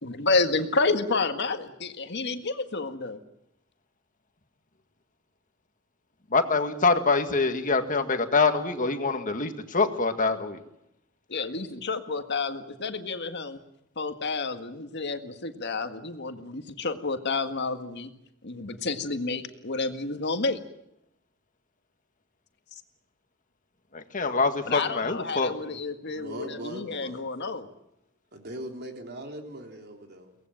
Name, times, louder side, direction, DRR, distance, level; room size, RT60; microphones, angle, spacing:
voice 1, 0.0-3.2 11.3-13.6 14.0-18.1 18.4-20.6 24.7-27.7, left 3 dB, 55° left, 7 dB, 1.8 m, -30 dB
voice 2, 6.3-10.6 23.9-25.5, left 4 dB, 40° left, 7 dB, 1.9 m, -25 dB
voice 3, 26.0-27.3 28.3-30.4, right 1 dB, 50° right, 4 dB, 3.6 m, -40 dB
23.5 x 18.5 x 9.1 m, 0.81 s
head